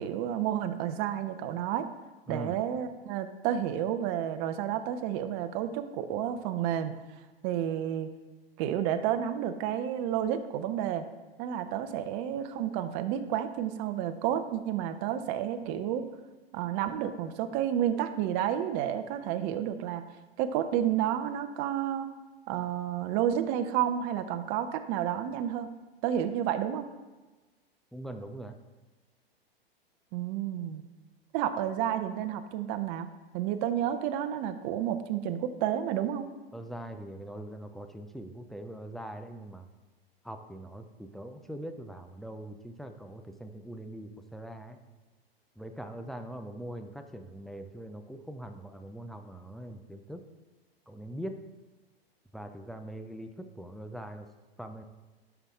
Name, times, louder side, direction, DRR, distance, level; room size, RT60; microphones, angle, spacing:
voice 1, 0.0-1.9 2.3-6.9 7.4-8.1 8.6-11.0 11.4-16.0 16.5-20.0 20.4-22.1 22.5-25.7 26.0-26.9 30.1-30.8 31.3-33.1 33.3-36.3, right 10 dB, 45° right, 9 dB, 0.8 m, -30 dB
voice 2, 2.3-2.6 27.9-28.6 36.5-39.7 40.2-44.8 45.6-50.2 50.9-51.4 52.3-54.3 54.6-54.8, right 1 dB, ahead, 6 dB, 0.4 m, -42 dB
11.0 x 5.9 x 3.6 m, 1.2 s
hypercardioid pair, 105°, 31 cm